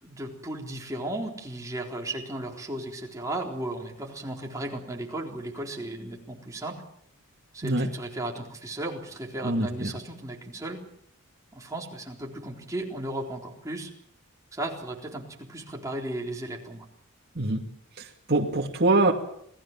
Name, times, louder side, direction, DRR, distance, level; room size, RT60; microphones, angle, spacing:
voice 1, 0.0-6.8 7.5-10.8 11.5-13.9 14.5-16.8, right 1 dB, 15° right, 0 dB, 3.9 m, -35 dB
voice 2, 9.4-9.9 17.4-17.6 18.0-19.1, right 2 dB, 50° right, 0 dB, 2.4 m, -24 dB
28.0 x 17.5 x 7.4 m, 0.69 s
head